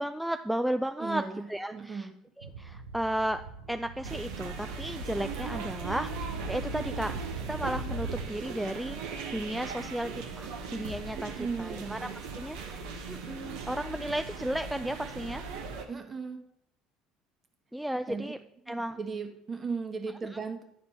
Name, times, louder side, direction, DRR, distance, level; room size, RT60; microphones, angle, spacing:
voice 1, 0.0-1.2 1.5-2.1 2.4-3.4 3.7-6.1 6.5-7.2 7.5-9.0 9.3-11.3 11.6-12.1 12.3-15.4 17.7-18.4 18.7-19.0, equal, 5° right, 8 dB, 0.3 m, -34 dB
voice 2, 1.0-2.2 11.1-12.2 15.9-16.4 18.1-18.3 18.6-20.6, right 5 dB, 35° right, 5 dB, 1.2 m, -37 dB
sound 1, 2.4-8.3, right 4 dB, 90° right, 0.6 m, -40 dB
sound 2, 4.0-15.9, right 5 dB, 70° right, 1.0 m, -39 dB
9.7 x 4.3 x 4.2 m, 0.76 s
hypercardioid pair, 65°, 0 cm